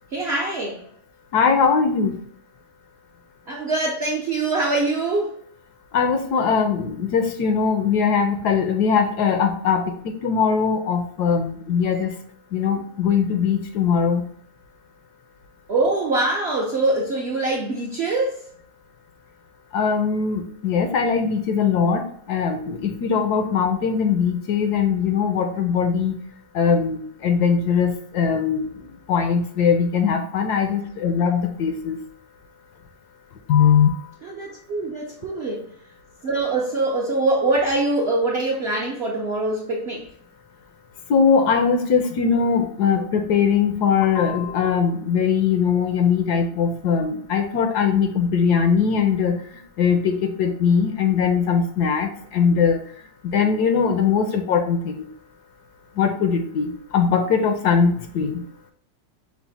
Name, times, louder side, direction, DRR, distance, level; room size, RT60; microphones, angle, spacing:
voice 1, 0.1-0.8 3.5-5.4 11.9-12.0 15.7-18.5 34.2-35.7 36.2-40.1, right 2 dB, 60° right, -2 dB, 0.6 m, -23 dB
voice 2, 1.3-2.1 5.9-12.1 12.5-14.2 19.7-22.0 22.3-26.2 26.5-28.7 29.1-32.0 33.5-33.9 41.1-49.4 49.8-52.8 53.3-55.0 56.0-58.4, left 6 dB, 75° left, 6 dB, 1.1 m, -20 dB
5.9 x 2.1 x 4.0 m, 0.62 s
omnidirectional pair, 1.9 m